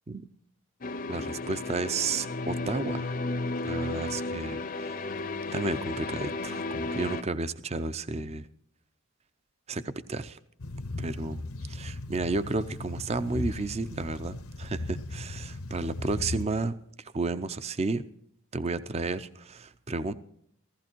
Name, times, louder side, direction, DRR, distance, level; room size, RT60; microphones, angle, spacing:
sound 1, 0.8-7.2, left 3 dB, 40° left, 0.6 m, -33 dB
voice 1, 1.1-3.1 3.6-5.1 5.5-8.5 9.7-10.4 11.0-11.4 11.7-16.8 17.1-18.0 18.5-20.1, right 3 dB, 30° right, 14 dB, 0.5 m, -32 dB
sound 2, 10.6-16.4, left 2 dB, 90° left, 1.0 m, -37 dB
15.5 x 14.5 x 4.5 m, 0.69 s
head